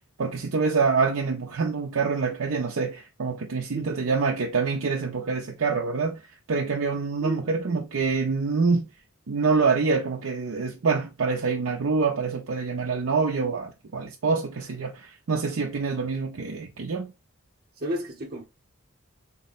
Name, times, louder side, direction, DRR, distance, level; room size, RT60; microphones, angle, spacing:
voice 1, 0.2-6.2 6.5-8.9 9.3-17.1, right 4 dB, 75° right, 0.5 m, -26 dB
voice 2, 3.7-4.1 7.2-7.5 17.8-18.4, right 1 dB, 45° right, 0.8 m, -33 dB
3.8 x 2.1 x 3.9 m
head